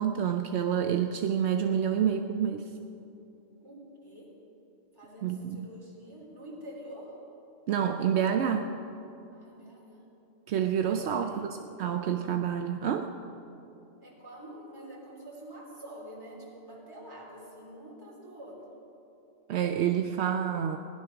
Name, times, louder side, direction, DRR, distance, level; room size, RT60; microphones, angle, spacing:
voice 1, 0.0-2.6 5.2-5.7 7.7-8.7 10.5-11.5 11.8-13.1 19.5-20.8, right 8 dB, 75° right, 6 dB, 0.9 m, -28 dB
voice 2, 3.6-4.4 4.9-7.2 9.3-10.1 10.8-11.5 14.0-18.7, right 1 dB, 20° right, -5 dB, 3.3 m, -47 dB
16.5 x 11.0 x 5.9 m, 2.8 s
omnidirectional pair, 1.2 m